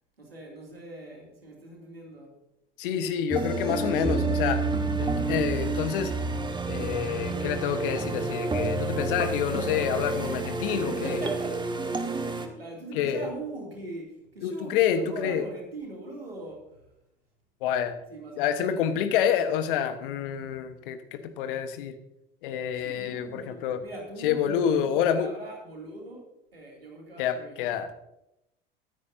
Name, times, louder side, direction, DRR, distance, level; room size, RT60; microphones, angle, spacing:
voice 1, 0.2-2.4 10.7-11.7 12.2-16.8 18.1-19.1 22.7-26.3 26.5-27.6, right 2 dB, 90° right, 0 dB, 2.8 m, -41 dB
voice 2, 2.8-4.6 5.0-6.1 6.7-11.2 12.9-13.3 14.4-15.4 17.6-17.9 18.4-21.9 22.4-23.8 24.2-25.3 27.2-27.9, left 8 dB, 65° left, 9 dB, 1.3 m, -28 dB
sound 1, 3.3-12.5, right 3 dB, 15° right, 1.5 m, -29 dB
22.5 x 9.8 x 2.7 m, 0.85 s
figure-of-eight pair, 70°, 29 cm